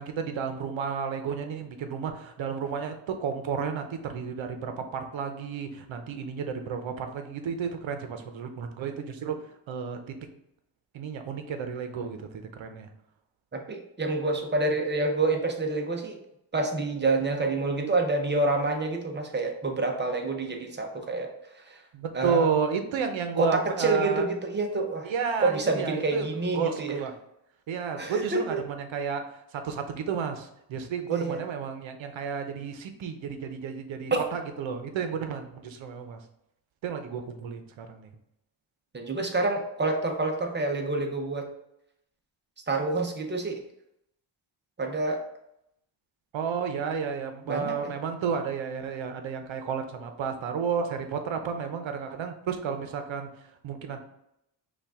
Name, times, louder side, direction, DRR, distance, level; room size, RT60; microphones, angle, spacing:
voice 1, 0.0-9.4 9.7-10.0 10.9-12.9 21.9-24.2 25.0-27.1 27.7-29.2 29.5-36.2 36.8-38.1 46.3-53.3 53.6-54.0, right 6 dB, 70° right, 6 dB, 0.8 m, -32 dB
voice 2, 13.5-16.2 16.5-21.3 21.7-21.8 22.1-22.5 23.4-25.1 25.4-27.0 28.0-28.6 31.1-31.4 34.1-34.2 38.9-41.5 42.7-43.6 44.8-45.2 47.5-47.9, right 3 dB, 25° right, 3 dB, 0.7 m, -27 dB
5.7 x 2.5 x 3.6 m, 0.80 s
wide cardioid pair, 140°, 47 cm